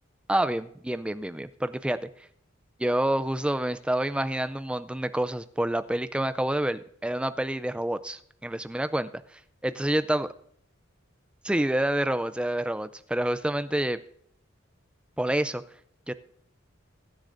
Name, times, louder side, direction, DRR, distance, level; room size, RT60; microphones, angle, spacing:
voice 1, 0.3-2.0 2.8-9.1 9.6-10.3 11.4-14.0 15.2-15.6 16.1-16.2, right 1 dB, 5° right, 12 dB, 0.4 m, -28 dB
22.0 x 10.0 x 2.6 m, 0.68 s
head